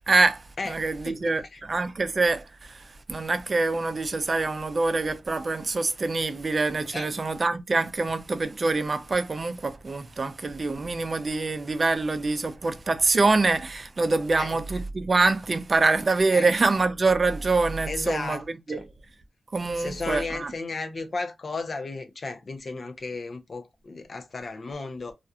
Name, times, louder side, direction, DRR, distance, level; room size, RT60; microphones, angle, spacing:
voice 1, 0.1-1.4 1.7-2.8 3.1-18.4 18.7-18.8 19.5-20.5, right 3 dB, 40° right, 0.4 m, -25 dB
voice 2, 1.0-1.6 6.9-7.1 14.4-14.6 16.3-16.5 17.9-18.8 19.7-25.1, left 3 dB, 50° left, 0.5 m, -34 dB
2.4 x 2.3 x 2.6 m
wide cardioid pair, 125°, 0 cm